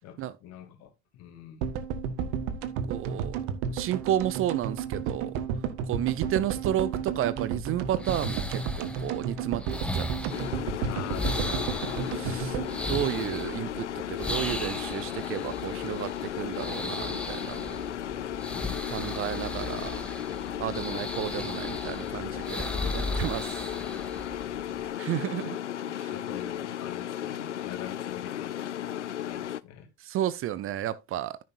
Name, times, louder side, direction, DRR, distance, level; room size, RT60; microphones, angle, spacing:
voice 1, 0.0-1.7 10.8-11.7 20.7-21.2 24.3-24.9 26.1-29.9, left 10 dB, 50° left, 2.8 m, -45 dB
sound 1, 1.6-13.8 14.1-14.2 14.3-14.4, right 7 dB, 55° right, 1.4 m, -32 dB
voice 2, 2.9-3.4 3.7-5.4 5.8-10.1 12.1-12.6 12.9-17.8 18.9-19.9 20.6-23.6 25.0-25.6 25.9-26.1 30.0-31.4, right 12 dB, 40° right, 0.7 m, -32 dB
sound 2, 7.3-24.9, left 1 dB, 5° left, 1.7 m, -37 dB
sound 3, 10.3-29.6, left 11 dB, 85° left, 0.5 m, -35 dB
14.0 x 6.3 x 2.6 m
figure-of-eight pair, 65°, 35 cm